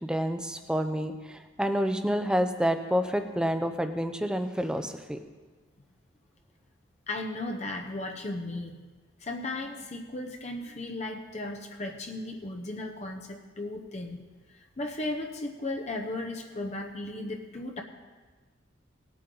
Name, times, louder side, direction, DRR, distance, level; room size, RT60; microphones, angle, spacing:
voice 1, 0.0-5.2, equal, 5° right, 7 dB, 0.6 m, -28 dB
voice 2, 7.1-8.8 9.2-14.2 14.8-17.8, left 2 dB, 35° left, 2 dB, 0.8 m, -35 dB
19.0 x 8.6 x 3.9 m, 1.4 s
head